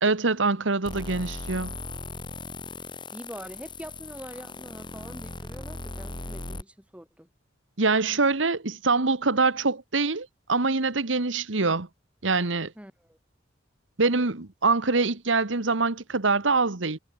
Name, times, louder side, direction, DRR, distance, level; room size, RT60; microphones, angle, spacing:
voice 1, 0.0-1.7 7.8-11.9 12.2-12.7 14.0-17.0, right 3 dB, 80° right, 1.5 m, -24 dB
sound 1, 0.9-6.6, left 2 dB, 25° left, 6.4 m, -38 dB
voice 2, 3.1-7.3 12.8-13.2, equal, 5° right, 4.5 m, -44 dB
head